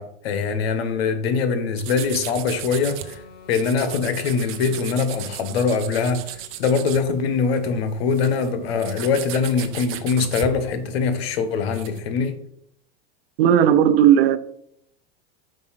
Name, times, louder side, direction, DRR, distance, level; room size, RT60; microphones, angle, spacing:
voice 1, 0.0-3.2 3.5-12.4, left 5 dB, 85° left, 1.2 m, -23 dB
sound 1, 1.8-3.2 3.5-7.5 7.8-12.0, right 12 dB, 45° right, 0.8 m, -36 dB
sound 2, 2.4-6.7, left 6 dB, 65° left, 1.6 m, -48 dB
voice 2, 13.4-14.4, right 9 dB, 75° right, 0.7 m, -15 dB
5.4 x 4.8 x 5.8 m
supercardioid pair, 125°, 30 cm